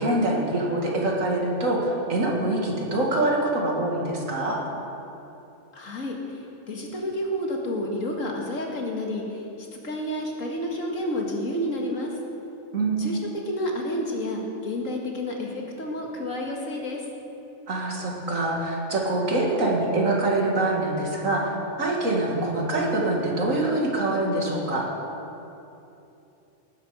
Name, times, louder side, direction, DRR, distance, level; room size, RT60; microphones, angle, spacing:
voice 1, 0.0-4.6 12.7-13.2 17.7-24.9, right 2 dB, 75° right, -2 dB, 2.6 m, -25 dB
voice 2, 5.7-6.2 6.7-9.4 9.8-12.1 13.0-13.2 13.5-17.0, left 1 dB, 75° left, 0 dB, 2.2 m, -30 dB
19.0 x 10.5 x 5.1 m, 2.9 s
omnidirectional pair, 1.4 m